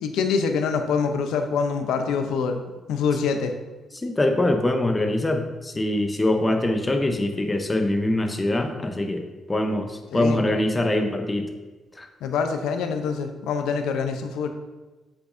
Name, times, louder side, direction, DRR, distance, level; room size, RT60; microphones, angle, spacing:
voice 1, 0.0-2.6 2.9-3.5 10.1-10.4 12.2-14.5, left 5 dB, 85° left, 6 dB, 0.7 m, -25 dB
voice 2, 3.9-9.2 9.5-11.5 12.0-12.1, left 1 dB, 20° left, 5 dB, 0.9 m, -23 dB
7.8 x 6.0 x 2.7 m, 1.2 s
cardioid pair, 90°, 0 cm